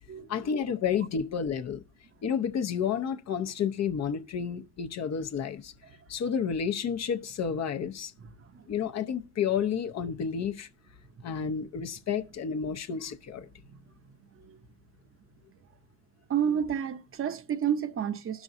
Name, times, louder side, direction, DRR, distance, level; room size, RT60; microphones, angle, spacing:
voice 1, 0.1-1.8 2.2-5.7 6.1-8.1 8.7-10.7 11.2-13.5, left 7 dB, 60° left, 0.8 m, -30 dB
voice 2, 8.2-8.7 13.6-13.8 14.3-14.6 16.3-18.4, right 8 dB, 45° right, 0.7 m, -31 dB
17.0 x 6.1 x 2.6 m
cardioid pair, 90°, 30 cm